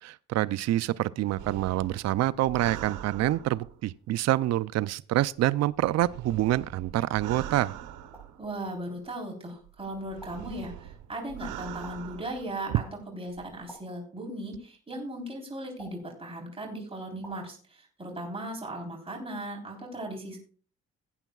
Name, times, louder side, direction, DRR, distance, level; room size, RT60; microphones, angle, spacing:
voice 1, 0.0-7.7, right 14 dB, 60° right, 0.4 m, -27 dB
sound 1, 1.4-3.9 5.1-8.8 9.6-12.6 13.3-13.6, right 11 dB, 90° right, 0.9 m, -42 dB
sound 2, 8.1-8.4 10.2-10.6 11.8-12.2 13.7-14.1 15.8-16.2 17.2-17.5, equal, 5° left, 6.4 m, -50 dB
voice 2, 8.4-20.4, right 1 dB, 20° right, 3.6 m, -37 dB
18.0 x 9.0 x 2.3 m
cardioid pair, 90°, 30 cm